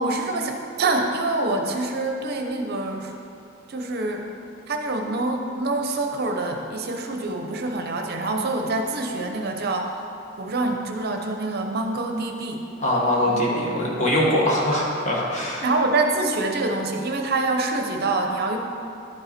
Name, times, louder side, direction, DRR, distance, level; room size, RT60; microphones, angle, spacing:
voice 1, 0.0-3.1 3.7-4.3 4.7-10.0 10.4-12.6 13.3-13.6 15.6-18.6, right 2 dB, 50° right, 3 dB, 0.6 m, -26 dB
voice 2, 12.8-15.7, left 1 dB, 35° left, -4 dB, 1.4 m, -22 dB
10.5 x 5.4 x 4.3 m, 2.7 s
head